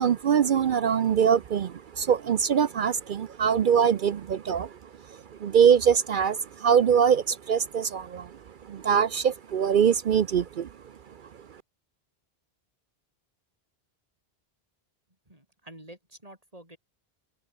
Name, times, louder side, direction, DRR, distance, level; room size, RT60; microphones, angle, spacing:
voice 1, 0.0-4.8 5.1-8.4 8.6-10.7, right 7 dB, 60° right, 0.7 m, -23 dB
voice 2, 15.3-16.8, right 1 dB, 35° right, 5.9 m, -48 dB
omnidirectional pair, 1.1 m